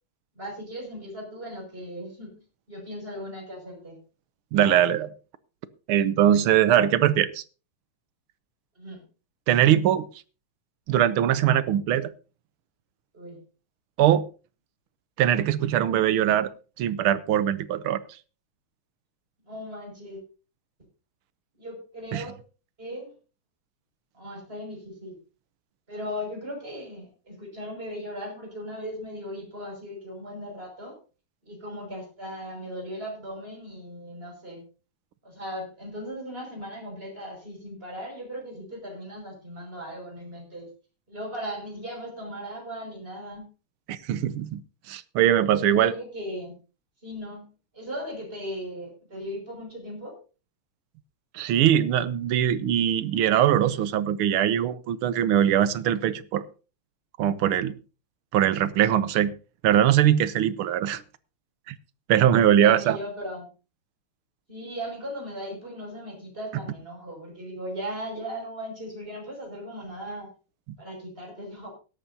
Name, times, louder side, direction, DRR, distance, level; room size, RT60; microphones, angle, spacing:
voice 1, 0.3-2.4 2.7-4.0 8.8-9.1 13.1-13.4 19.4-20.2 21.6-22.4 22.8-23.1 24.1-25.2 25.9-31.0 31.4-34.6 35.2-40.7 41.1-43.5 45.5-46.6 47.0-47.5 47.7-50.2 62.6-63.5 64.5-70.3 70.8-71.7, equal, 25° right, 6.1 m, -37 dB
voice 2, 4.5-5.1 5.9-7.4 9.5-10.1 10.9-12.1 14.0-14.3 15.2-16.5 16.8-18.0 22.1-22.2 43.9-44.6 44.9-45.9 51.3-56.4 57.2-57.7 58.3-59.3 59.6-61.0 61.7-61.8 62.1-63.0, right 10 dB, 80° right, 1.7 m, -21 dB
17.0 x 12.5 x 2.7 m
omnidirectional pair, 2.3 m